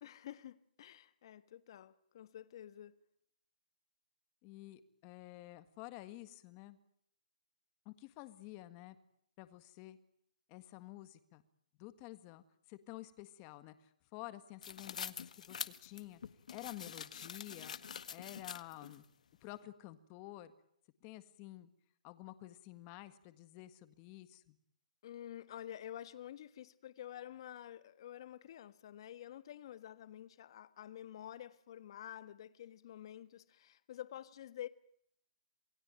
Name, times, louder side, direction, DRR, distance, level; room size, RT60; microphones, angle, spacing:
voice 1, 0.0-2.9 25.0-34.7, left 11 dB, 35° left, 1.6 m, -49 dB
voice 2, 4.4-6.8 7.9-9.0 9.4-10.0 10.5-11.4 11.8-16.2 16.5-17.8 18.1-19.0 19.4-20.5 21.0-21.7 22.0-24.6, left 16 dB, 20° left, 1.7 m, -51 dB
sound 1, 14.6-19.0, left 7 dB, 60° left, 1.7 m, -45 dB
28.5 x 20.0 x 9.0 m
hypercardioid pair, 175°, 4 cm